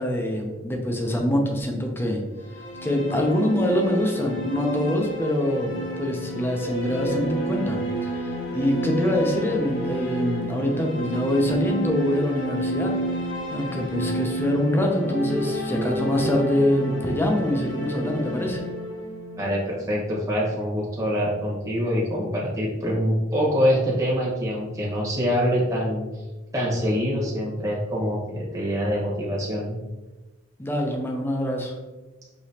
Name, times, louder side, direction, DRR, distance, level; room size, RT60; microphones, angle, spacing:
voice 1, 0.0-2.2 2.8-12.9 13.5-18.6 30.6-31.8, left 1 dB, 10° left, 1 dB, 0.5 m, -24 dB
sound 1, 2.3-20.3, right 1 dB, 75° left, 1.2 m, -30 dB
voice 2, 19.4-26.1 26.5-29.8, equal, 15° right, -5 dB, 1.2 m, -25 dB
5.0 x 3.0 x 2.8 m, 1.1 s
head